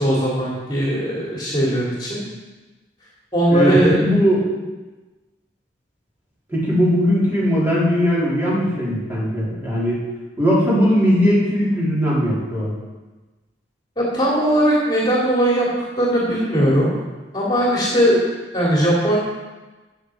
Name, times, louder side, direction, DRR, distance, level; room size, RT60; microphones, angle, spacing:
voice 1, 0.0-2.2 3.3-4.0 14.0-15.7 16.0-16.9 17.3-18.2 18.5-19.2, right 1 dB, 25° left, -5 dB, 2.8 m, -19 dB
voice 2, 3.5-4.5 6.5-10.0 10.4-12.7, equal, 10° right, -8 dB, 4.1 m, -19 dB
16.0 x 7.0 x 4.9 m, 1.2 s
head